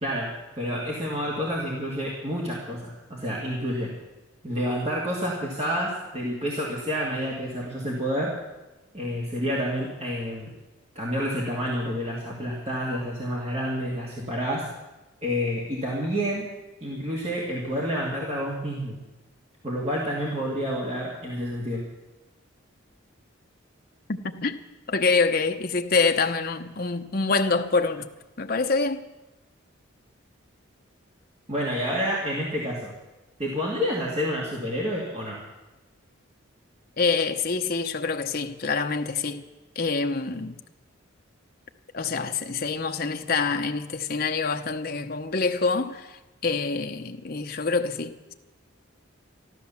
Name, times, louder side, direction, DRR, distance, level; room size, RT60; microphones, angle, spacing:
voice 1, 0.0-3.9 4.4-8.3 8.9-10.5 11.0-14.7 15.2-16.5 16.8-19.0 19.6-21.8 31.5-32.9 33.4-35.4, equal, 30° right, 2.3 m, -29 dB
voice 2, 24.1-24.5 24.9-28.1 28.4-29.1 37.0-39.4 39.8-40.6 41.9-48.3, left 4 dB, 50° left, 0.9 m, -26 dB
13.5 x 12.5 x 7.1 m
head